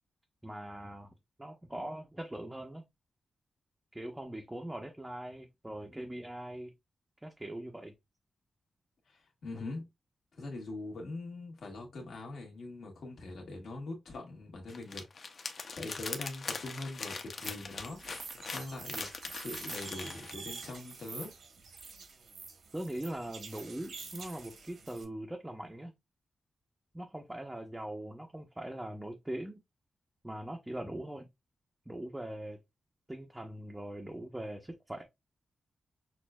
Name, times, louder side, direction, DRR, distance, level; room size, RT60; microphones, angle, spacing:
voice 1, 0.4-1.1 1.4-2.8 3.9-6.7 7.2-8.0 22.7-25.9 26.9-29.6 30.2-31.3 31.9-32.6 33.1-35.0, right 1 dB, 10° right, 0.6 m, -41 dB
voice 2, 9.1-9.8 10.4-15.0 15.8-18.3 18.5-21.3, left 2 dB, 70° left, 1.6 m, -42 dB
sound 1, 14.7-20.3, left 4 dB, 50° left, 0.7 m, -41 dB
sound 2, 17.4-25.0, right 4 dB, 70° right, 1.1 m, -47 dB
6.2 x 2.5 x 2.2 m
wide cardioid pair, 130°, 0 cm